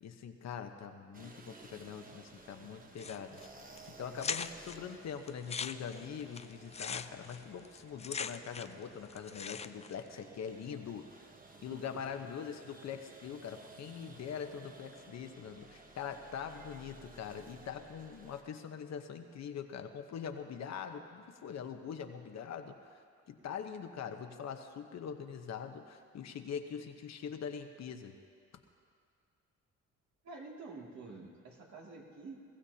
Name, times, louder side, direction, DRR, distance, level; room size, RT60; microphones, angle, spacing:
voice 1, 0.0-3.4 4.0-11.3 11.6-28.1, left 7 dB, 60° left, 6 dB, 1.0 m, -43 dB
sound 1, 1.1-18.4, right 3 dB, 30° right, 1.1 m, -56 dB
sound 2, 3.0-3.5 3.8-3.9 4.2-4.8 5.3-8.8 9.1-9.9, left 6 dB, 20° left, 0.4 m, -40 dB
voice 2, 11.7-12.0 30.2-32.4, right 3 dB, 65° right, -2 dB, 2.5 m, -48 dB
22.0 x 15.0 x 2.9 m, 2.2 s
cardioid pair, 90°, 30 cm